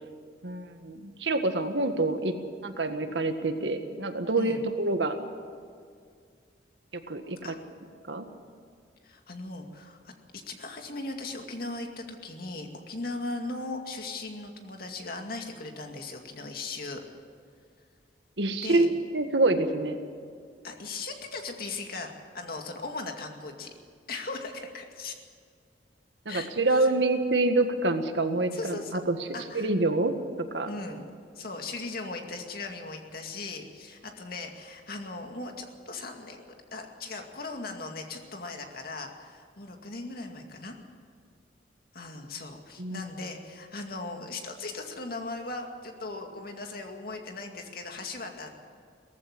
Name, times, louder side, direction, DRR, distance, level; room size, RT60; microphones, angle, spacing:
voice 1, 0.4-2.3 2.6-5.2 7.1-7.5 8.1-8.3 18.4-20.0 26.2-29.2 29.5-30.1 30.5-30.7 42.8-43.0, right 2 dB, 80° right, 7 dB, 1.7 m, -26 dB
voice 2, 9.0-17.0 18.6-18.9 20.6-23.7 24.1-25.1 26.3-26.9 28.5-29.0 29.3-29.7 30.7-31.1 31.3-40.7 41.9-48.6, left 3 dB, 55° left, 3 dB, 2.3 m, -38 dB
18.0 x 15.0 x 9.8 m, 2.1 s
head